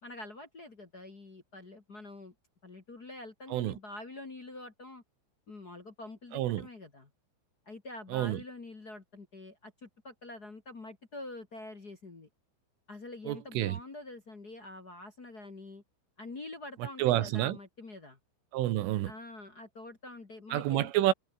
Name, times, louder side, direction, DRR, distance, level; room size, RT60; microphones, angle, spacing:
voice 1, 0.0-2.3 2.6-5.0 5.5-7.1 7.6-12.3 12.9-15.8 16.2-18.2 19.0-20.9, left 2 dB, 35° left, 1.5 m, -46 dB
voice 2, 6.3-6.6 8.1-8.4 13.3-13.8 17.0-17.6 18.5-19.1 20.5-21.1, right 14 dB, 80° right, 3.9 m, -29 dB
omnidirectional pair, 5.9 m